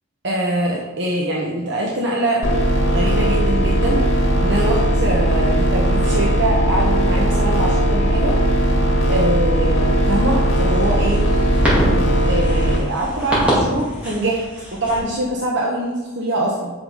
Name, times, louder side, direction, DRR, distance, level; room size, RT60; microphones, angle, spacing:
voice 1, 0.2-2.4 2.9-8.4 9.1-11.2 12.2-14.4 14.7-16.7, right 1 dB, 55° right, -2 dB, 1.2 m, -23 dB
sound 1, 2.4-12.8, equal, 90° left, 2.0 m, -18 dB
sound 2, 9.8-15.0, equal, 5° right, 2.7 m, -25 dB
8.2 x 6.0 x 5.1 m, 1.2 s
head